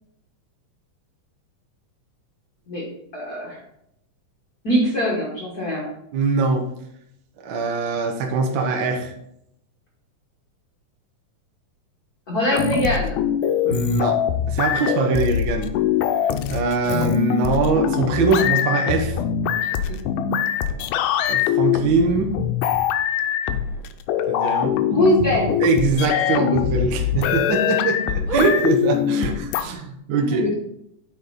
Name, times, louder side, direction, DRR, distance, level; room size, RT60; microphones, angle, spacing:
voice 1, 3.1-3.6 4.6-5.9 12.3-13.2 16.8-17.0 18.8-19.0 19.9-20.0 24.9-25.5 30.2-30.5, left 1 dB, 55° left, -4 dB, 1.0 m, -22 dB
voice 2, 6.1-6.7 7.4-9.1 13.6-14.2 14.5-15.7 16.5-19.2 21.3-22.3 24.3-24.8 25.6-30.4, right 4 dB, 75° right, 2 dB, 1.1 m, -22 dB
sound 1, 12.5-29.6, left 9 dB, 90° left, 2.1 m, -23 dB
sound 2, 22.1-22.2 22.7-22.8 23.8-23.9 24.2-24.3 24.7-24.8 26.5-27.2 27.7-27.8 28.3-28.5 29.4-29.5 29.7-29.8, right 2 dB, 15° right, 2.2 m, -27 dB
9.1 x 4.2 x 4.1 m, 0.78 s
omnidirectional pair, 3.6 m